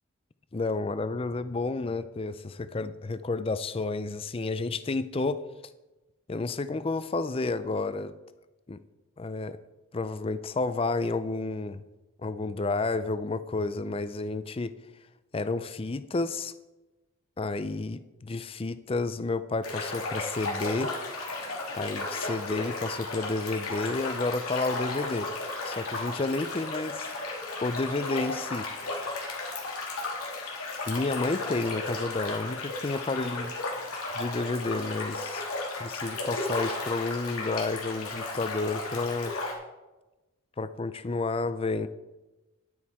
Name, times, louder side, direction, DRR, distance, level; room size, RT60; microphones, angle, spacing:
voice 1, 0.5-5.4 6.3-8.1 8.7-8.8 9.2-9.6 9.9-11.8 12.2-14.7 15.3-16.5 17.4-20.9 21.8-25.3 25.6-27.1 27.6-28.7 30.9-33.5 34.1-35.4 35.8-39.4 40.6-41.9, left 3 dB, 25° left, 13 dB, 0.4 m, -31 dB
sound 1, 19.6-39.5, left 2 dB, 90° left, 2.7 m, -34 dB
10.5 x 9.2 x 4.3 m, 1.1 s
head